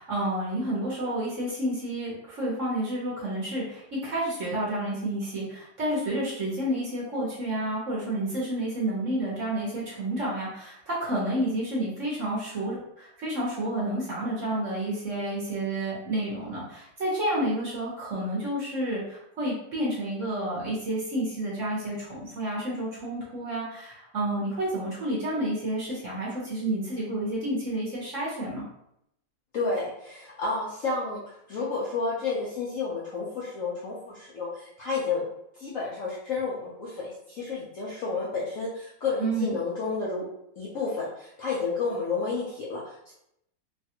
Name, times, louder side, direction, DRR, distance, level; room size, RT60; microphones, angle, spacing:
voice 1, 0.0-28.7 39.2-39.6, right 1 dB, 55° right, -5 dB, 1.0 m, -30 dB
voice 2, 29.5-31.2 31.5-35.2 35.6-40.2 40.6-43.1, left 4 dB, 70° left, -6 dB, 0.8 m, -31 dB
3.2 x 2.3 x 2.8 m, 0.77 s
omnidirectional pair, 2.0 m